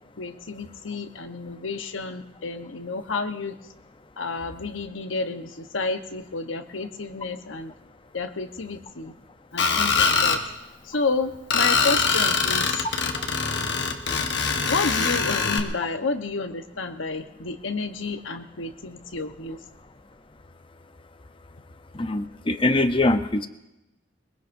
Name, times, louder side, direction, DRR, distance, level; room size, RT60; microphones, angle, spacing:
voice 1, 0.2-3.6 4.2-7.7 8.1-9.1 9.5-10.4 10.8-12.8 14.7-19.6, left 3 dB, 80° left, 7 dB, 1.1 m, -30 dB
Screech, 9.6-10.4 11.5-15.6, left 5 dB, 60° left, 1.3 m, -23 dB
voice 2, 21.9-23.5, left 2 dB, 25° left, 10 dB, 0.7 m, -22 dB
22.5 x 21.5 x 2.7 m, 0.91 s
head